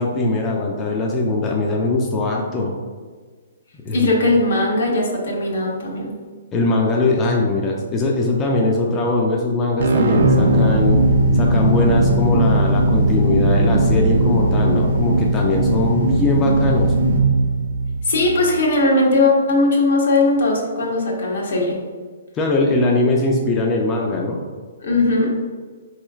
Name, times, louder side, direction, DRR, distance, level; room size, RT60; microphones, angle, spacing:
voice 1, 0.0-2.7 3.8-4.1 6.5-11.0 11.3-16.9 22.3-24.4, left 2 dB, 20° left, -1 dB, 0.4 m, -21 dB
voice 2, 3.9-6.1 18.0-21.8 24.8-25.4, left 2 dB, 75° left, -1 dB, 0.9 m, -18 dB
sound 1, 9.8-18.5, right 1 dB, 70° right, 0.5 m, -17 dB
3.8 x 3.1 x 2.3 m, 1.5 s
hypercardioid pair, 150°, 0 cm